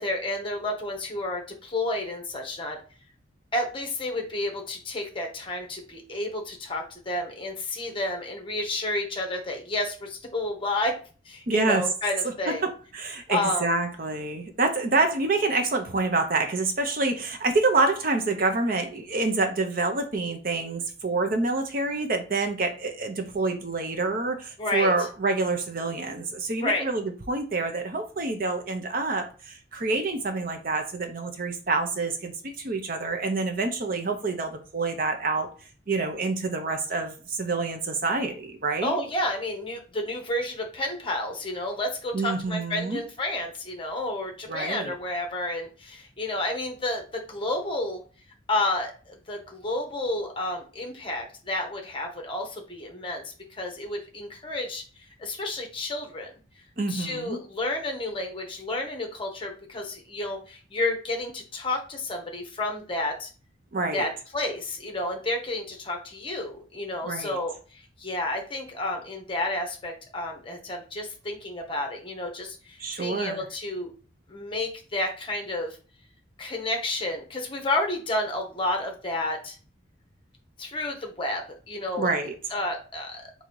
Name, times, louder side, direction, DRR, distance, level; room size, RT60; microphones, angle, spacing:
voice 1, 0.0-2.8 3.5-11.0 11.2-12.7 13.3-13.8 24.6-24.9 26.6-26.8 38.8-48.0 48.5-54.8 55.2-56.3 56.9-63.3 63.9-73.9 74.3-75.8 76.4-79.6 80.6-82.1 82.5-83.4, left 2 dB, 25° left, 0.9 m, -31 dB
voice 2, 11.5-11.9 12.2-35.5 35.9-39.0 42.1-43.0 44.5-44.9 56.8-57.4 63.7-64.1 67.0-67.4 72.8-73.4 82.0-82.4, right 3 dB, 45° right, 0.7 m, -27 dB
3.8 x 2.7 x 4.6 m
head